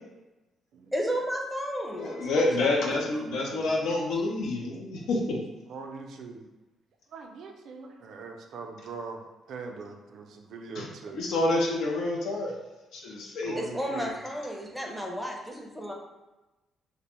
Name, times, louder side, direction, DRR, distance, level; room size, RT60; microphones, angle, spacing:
voice 1, 0.9-2.8 4.1-4.2 13.6-15.9, equal, ahead, 0 dB, 0.5 m, -33 dB
voice 2, 2.0-5.4 10.8-10.9 11.1-12.6 12.9-13.5, left 2 dB, 80° left, -2 dB, 0.4 m, -28 dB
voice 3, 3.1-3.9 5.7-6.4 7.1-9.2 9.5-11.3 13.4-14.1 14.8-15.0, right 4 dB, 70° right, 3 dB, 0.3 m, -42 dB
2.4 x 2.1 x 2.9 m, 1.0 s
cardioid pair, 90°, 0 cm